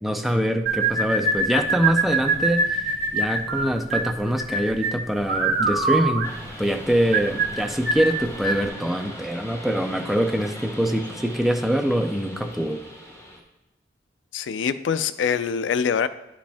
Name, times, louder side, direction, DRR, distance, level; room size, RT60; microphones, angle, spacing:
voice 1, 0.0-2.8 3.1-6.3 6.6-12.8, equal, ahead, 5 dB, 0.4 m, -24 dB
sound 1, 0.7-8.7, right 3 dB, 55° right, 1.1 m, -24 dB
sound 2, 6.2-13.4, equal, 15° left, 1.1 m, -40 dB
voice 2, 14.3-16.1, left 7 dB, 75° left, 14 dB, 0.4 m, -24 dB
10.0 x 5.1 x 3.5 m, 0.97 s
head